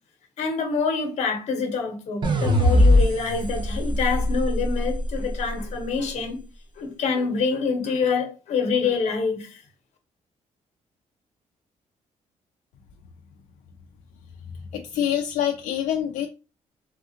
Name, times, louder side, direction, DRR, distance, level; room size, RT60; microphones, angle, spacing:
voice 1, 0.4-6.4 6.8-9.6, left 5 dB, 60° left, 0.9 m, -26 dB
sound 1, 2.2-5.5, left 1 dB, 40° right, 0.6 m, -21 dB
voice 2, 14.7-16.3, left 10 dB, 80° left, 0.4 m, -25 dB
3.4 x 2.4 x 2.8 m
cardioid pair, 165°, 13 cm